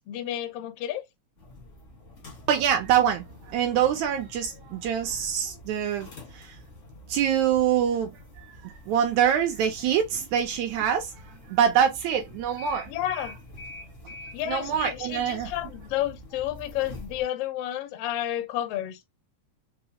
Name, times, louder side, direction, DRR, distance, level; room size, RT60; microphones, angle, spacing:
voice 1, 0.1-1.0 12.9-13.4 14.3-19.0, left 12 dB, 80° left, 1.3 m, -31 dB
sound 1, 1.4-17.2, left 1 dB, 55° left, 0.8 m, -46 dB
voice 2, 2.5-6.1 6.3-6.6 7.1-8.1 8.4-11.1 11.5-12.9 14.5-15.5, right 9 dB, 75° right, 1.8 m, -25 dB
5.3 x 2.0 x 2.8 m
omnidirectional pair, 3.6 m